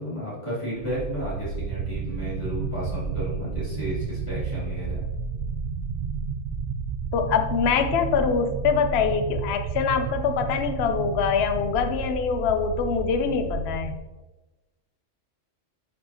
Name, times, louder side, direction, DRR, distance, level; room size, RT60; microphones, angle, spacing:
voice 1, 0.0-5.0, equal, 25° left, -11 dB, 2.8 m, -33 dB
sound 1, 0.8-14.0, right 5 dB, 65° right, 0.9 m, -31 dB
voice 2, 7.1-14.0, left 6 dB, 60° left, 7 dB, 0.8 m, -24 dB
10.5 x 5.2 x 2.9 m, 1.1 s
omnidirectional pair, 1.3 m